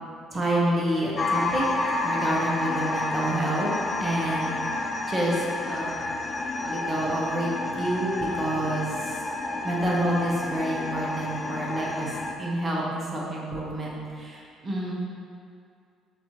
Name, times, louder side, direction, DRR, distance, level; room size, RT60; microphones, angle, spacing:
voice 1, 0.3-1.6 2.0-3.7 4.0-4.5 5.1-5.3 5.7-6.0 6.6-9.1 9.6-12.1 12.4-14.9, right 1 dB, 30° right, -4 dB, 1.0 m, -28 dB
sound 1, 1.2-12.4, left 2 dB, 35° left, 0.4 m, -30 dB
5.9 x 2.9 x 2.8 m, 2.4 s
figure-of-eight pair, 50°, 0 cm